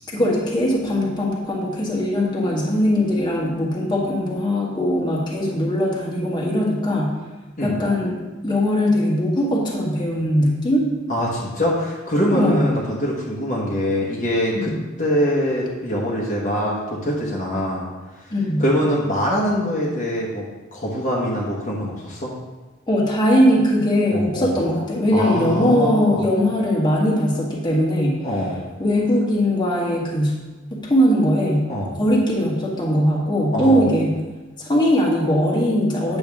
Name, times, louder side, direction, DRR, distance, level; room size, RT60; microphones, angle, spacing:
voice 1, 0.1-7.1 7.6-10.8 12.3-12.7 14.5-14.7 18.3-18.6 22.9-28.1 28.8-30.3 30.7-31.7 32.0-34.2 34.6-36.2, equal, 25° left, -4 dB, 1.6 m, -20 dB
voice 2, 11.1-14.7 15.0-17.9 18.6-20.5 20.7-22.3 24.1-24.6 25.1-26.3 28.2-28.6 31.7-31.9 33.5-33.9, equal, 40° left, -4 dB, 1.4 m, -23 dB
8.8 x 6.9 x 3.6 m, 1.2 s
head